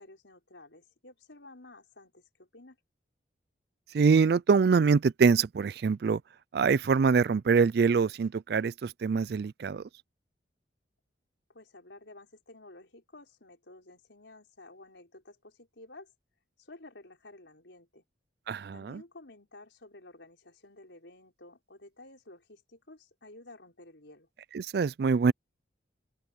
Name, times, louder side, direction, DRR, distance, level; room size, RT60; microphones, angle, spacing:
voice 1, 0.0-2.8 11.5-16.1 16.6-18.0 18.7-24.3, left 2 dB, 75° left, 4.9 m, -52 dB
voice 2, 3.9-6.2 6.5-9.8 18.5-19.0 24.5-25.3, right 5 dB, 55° right, 0.3 m, -24 dB
open air
head